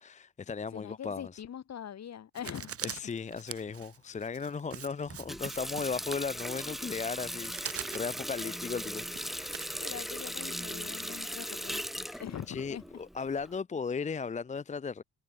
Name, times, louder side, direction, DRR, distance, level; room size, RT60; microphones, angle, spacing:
voice 1, 0.0-1.4 2.8-9.6 12.1-12.2 12.5-15.0, left 5 dB, 25° left, 0.6 m, -36 dB
voice 2, 0.7-3.0 8.4-8.6 9.8-12.8, left 9 dB, 60° left, 6.5 m, -43 dB
Writing, 2.4-10.3, right 9 dB, 50° right, 1.3 m, -44 dB
Water tap faucet, 5.1-13.5, equal, ahead, 3.0 m, -38 dB
cardioid pair, 90°, 30 cm